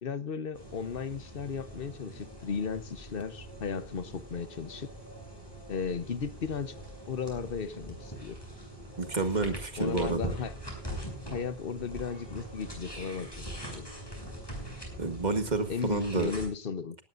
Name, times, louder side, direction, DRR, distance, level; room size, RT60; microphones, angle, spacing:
voice 1, 0.0-4.9 5.7-6.7 7.1-8.4 9.8-10.5 11.3-13.3 13.7-13.9 15.7-17.0, left 6 dB, 60° left, 1.2 m, -35 dB
sound 1, 0.5-16.5, right 1 dB, 20° left, 7.8 m, -43 dB
voice 2, 9.0-10.3 15.0-16.3, right 3 dB, 45° right, 1.9 m, -29 dB
19.0 x 16.0 x 2.6 m
omnidirectional pair, 1.1 m